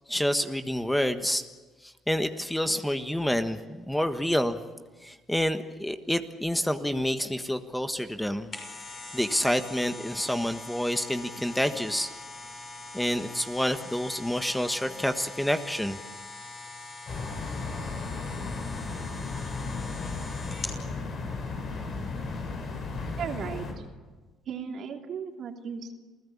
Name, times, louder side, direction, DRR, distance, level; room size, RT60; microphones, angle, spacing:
voice 1, 0.1-1.4 2.1-3.6 3.9-4.6 5.0-8.5 9.1-12.1 12.9-16.0, equal, 5° left, 8 dB, 1.4 m, -28 dB
sound 1, 8.3-20.8 21.3-21.4, left 2 dB, 30° left, 6.2 m, -43 dB
sound 2, 17.1-23.7, left 3 dB, 55° left, 6.8 m, -35 dB
voice 2, 23.2-23.8 24.5-26.0, right 6 dB, 60° right, 3 dB, 3.0 m, -36 dB
28.0 x 16.5 x 8.7 m, 1.3 s
supercardioid pair, 80°, 0 cm